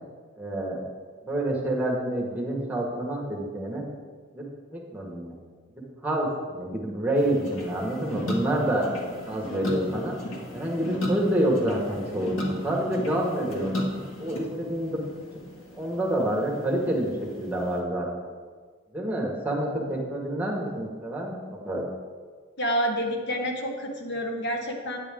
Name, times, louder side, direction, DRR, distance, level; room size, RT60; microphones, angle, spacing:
voice 1, 0.4-0.8 1.2-3.8 4.3-4.4 4.7-5.4 6.0-8.8 9.2-10.1 10.5-13.7 14.2-15.0 15.7-18.3 18.9-21.8, right 1 dB, 10° right, -3 dB, 1.6 m, -28 dB
sound 1, 7.1-17.8, left 1 dB, 85° left, 1.8 m, -35 dB
voice 2, 22.6-25.0, equal, 60° left, 2 dB, 1.2 m, -28 dB
9.5 x 9.2 x 3.7 m, 1.5 s
head